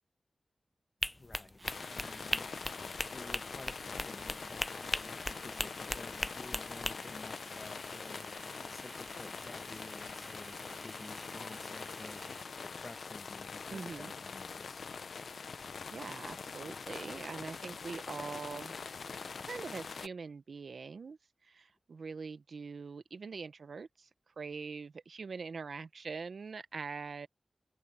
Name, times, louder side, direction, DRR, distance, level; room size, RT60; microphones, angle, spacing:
sound 1, 1.0-6.9, left 1 dB, 20° left, 0.6 m, -37 dB
voice 1, 1.2-1.6 1.9-14.9, left 2 dB, 40° left, 1.7 m, -52 dB
Domestic sounds home sounds, 1.5-12.6, right 2 dB, 30° right, 0.8 m, -53 dB
sound 2, 1.6-20.1, left 5 dB, 75° left, 0.7 m, -44 dB
voice 2, 13.7-14.1 15.5-18.7 19.5-27.3, right 5 dB, 75° right, 0.9 m, -43 dB
open air
cardioid pair, 55°, 0 cm